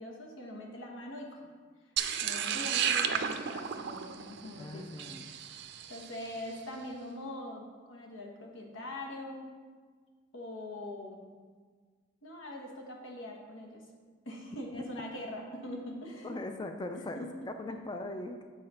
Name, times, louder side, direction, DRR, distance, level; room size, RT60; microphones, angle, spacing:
voice 1, 0.0-1.4 2.2-5.1 5.9-9.5 10.3-11.2 12.2-13.8 14.2-16.4 16.9-17.8, left 1 dB, 90° left, 0 dB, 1.3 m, -43 dB
sound 1, 2.0-6.3, right 8 dB, 65° right, 0.5 m, -33 dB
voice 2, 4.5-5.3 14.7-14.8 16.2-17.3 17.6-18.4, left 2 dB, 20° left, 6 dB, 0.3 m, -40 dB
7.7 x 4.2 x 5.6 m, 1.6 s
head